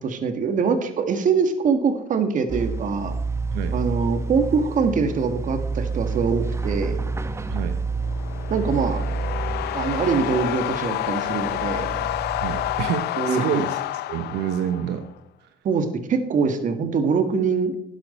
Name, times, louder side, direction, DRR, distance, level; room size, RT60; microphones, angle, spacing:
voice 1, 0.0-3.2 3.7-7.0 8.5-9.0 9.7-11.9 13.2-13.6 15.6-17.7, right 5 dB, 50° right, 8 dB, 1.7 m, -23 dB
sound 1, 2.5-12.9, right 3 dB, 15° right, 1.0 m, -29 dB
sound 2, 8.0-15.1, left 15 dB, 75° left, 0.5 m, -29 dB
voice 2, 12.4-13.8 14.1-15.1 15.4-15.5, right 9 dB, 85° right, 8 dB, 0.9 m, -28 dB
12.5 x 10.5 x 4.3 m, 0.73 s
cardioid pair, 110°, 17 cm